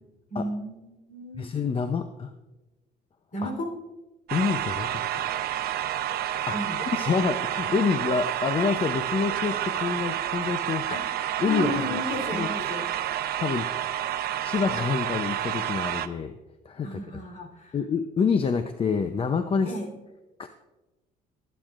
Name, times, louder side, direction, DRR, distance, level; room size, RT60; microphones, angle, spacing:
voice 1, 0.3-1.5 3.3-3.7 6.5-6.8 10.9-11.0 11.4-12.9 16.8-17.8 19.6-19.9, equal, 50° left, 3 dB, 3.7 m, -33 dB
voice 2, 1.4-2.3 3.4-3.5 4.3-5.3 6.5-10.9 11.4-12.0 12.3-12.5 13.4-13.7 14.4-16.4 16.6-17.2 17.7-19.7 20.4-20.5, left 5 dB, 35° left, 8 dB, 0.6 m, -27 dB
sound 1, 4.3-16.1, right 11 dB, 65° right, 0.7 m, -29 dB
23.0 x 9.1 x 2.5 m, 1.1 s
cardioid pair, 110°, 17 cm